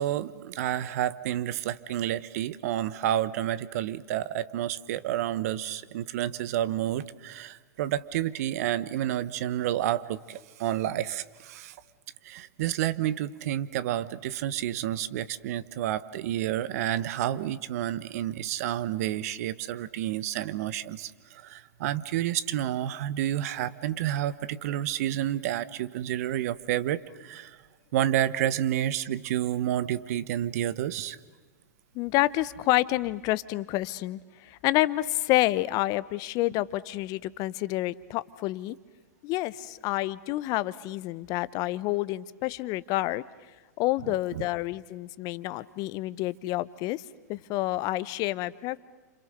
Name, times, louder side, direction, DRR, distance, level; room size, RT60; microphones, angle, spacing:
voice 1, 0.0-11.7 12.2-27.6 27.9-31.2, right 12 dB, 55° right, 16 dB, 1.1 m, -30 dB
voice 2, 31.9-38.8 39.2-43.2 43.8-47.0 47.3-48.8, left 17 dB, 40° left, 18 dB, 0.9 m, -28 dB
29.5 x 27.0 x 6.7 m, 1.3 s
hypercardioid pair, 105°, 10 cm